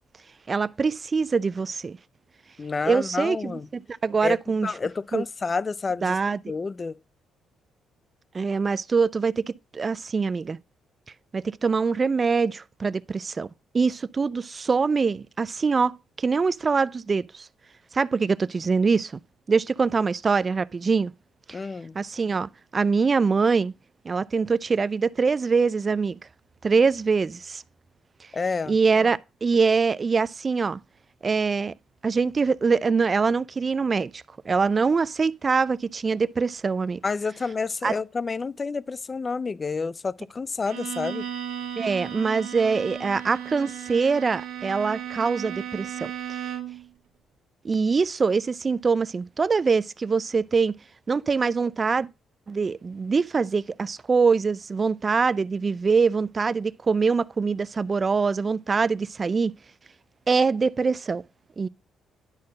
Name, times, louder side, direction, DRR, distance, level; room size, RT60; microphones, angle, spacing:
voice 1, 0.5-2.0 2.8-4.7 5.1-5.2 6.0-6.4 8.3-10.6 11.3-13.5 13.7-17.5 17.9-19.2 19.5-21.1 21.5-21.6 21.9-23.7 24.0-26.2 26.6-27.6 28.7-30.8 31.2-31.7 32.0-37.0 37.8-37.9 41.8-46.1 47.6-50.7 51.1-52.1 52.5-59.5 60.3-61.2 61.6-61.7, right 5 dB, 35° right, 0.4 m, -24 dB
voice 2, 2.6-3.7 4.2-6.2 6.5-7.0 21.5-22.0 28.3-28.8 37.0-41.3, left 4 dB, 30° left, 0.4 m, -29 dB
Bowed string instrument, 40.6-46.9, right 10 dB, 90° right, 1.3 m, -35 dB
10.5 x 4.3 x 5.2 m
cardioid pair, 90°, 0 cm